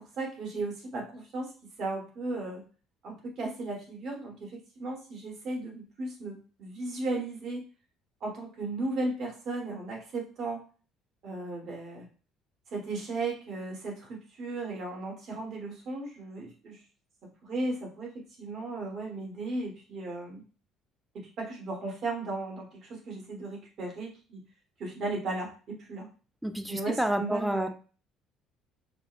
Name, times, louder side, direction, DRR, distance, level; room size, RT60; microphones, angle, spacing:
voice 1, 0.0-1.5 1.8-2.6 3.0-7.6 8.2-10.6 11.2-12.1 12.7-16.8 17.4-18.1 18.4-20.4 21.1-24.4 24.8-26.1 26.7-27.7, right 2 dB, 50° right, -1 dB, 1.4 m, -35 dB
voice 2, 26.4-27.7, right 1 dB, 5° right, 8 dB, 0.4 m, -29 dB
5.0 x 2.2 x 2.4 m, 0.37 s
cardioid pair, 125°, 0 cm